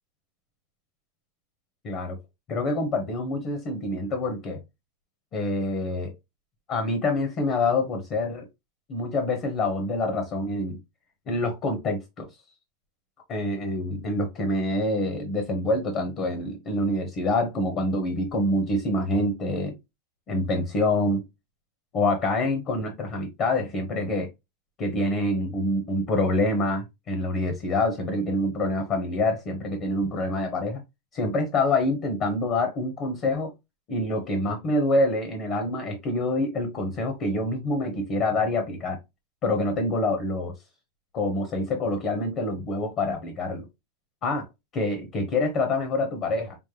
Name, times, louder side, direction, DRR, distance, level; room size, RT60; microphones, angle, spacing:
voice 1, 1.8-2.2 2.5-4.6 5.3-6.1 6.7-8.5 8.9-10.8 11.3-12.3 13.3-19.7 20.3-21.2 21.9-24.3 24.8-30.8 31.1-33.5 33.9-39.0 39.4-40.5 41.1-43.7 44.2-44.5 44.7-46.6, left 2 dB, 30° left, 0.9 m, -26 dB
5.1 x 2.1 x 3.2 m
supercardioid pair, 160°, 0 cm